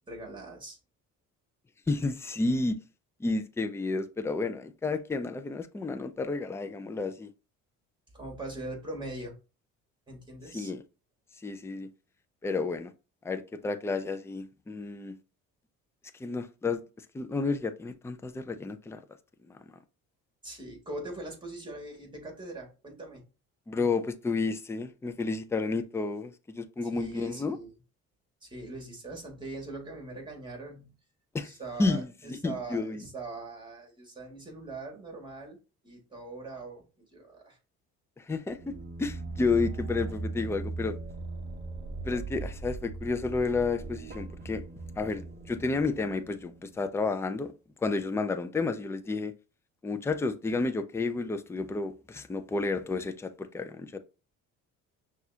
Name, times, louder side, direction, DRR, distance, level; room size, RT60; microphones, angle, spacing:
voice 1, 0.1-0.8 8.1-9.3 10.1-10.7 20.4-23.2 26.8-27.7 28.4-30.9 31.4-35.6 35.8-36.9 37.1-37.6, right 2 dB, 15° right, 2.0 m, -41 dB
voice 2, 1.9-2.8 3.2-7.3 10.5-10.8 11.4-11.9 12.4-12.9 13.2-15.2 16.2-16.8 17.1-19.0 19.5-19.6 23.7-27.6 31.3-31.5 31.8-33.0 38.2-41.0 42.0-44.6 45.0-47.5 47.8-49.3 49.8-54.0, left 3 dB, 10° left, 0.4 m, -31 dB
sound 1, 38.5-47.1, right 3 dB, 30° right, 0.8 m, -39 dB
5.8 x 2.5 x 2.8 m
supercardioid pair, 85°, 33 cm